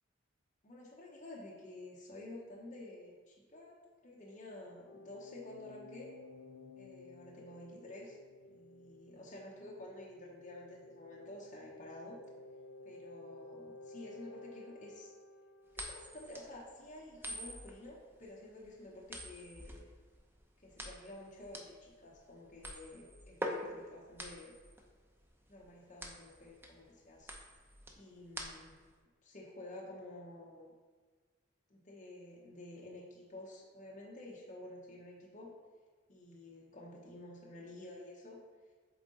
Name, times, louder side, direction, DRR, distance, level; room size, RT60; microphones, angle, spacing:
voice 1, 0.6-3.8 4.0-6.1 6.8-8.2 8.4-12.2 12.8-15.1 15.7-19.8 20.6-24.5 25.5-27.3 28.0-28.8 29.2-30.7 31.7-35.5 36.1-38.4, left 1 dB, 40° left, -4 dB, 0.9 m, -51 dB
sound 1, 4.9-16.5, left 2 dB, 60° left, 0.4 m, -54 dB
sound 2, 15.7-28.9, equal, 10° right, 0.6 m, -46 dB
7.9 x 3.7 x 3.8 m, 1.5 s
head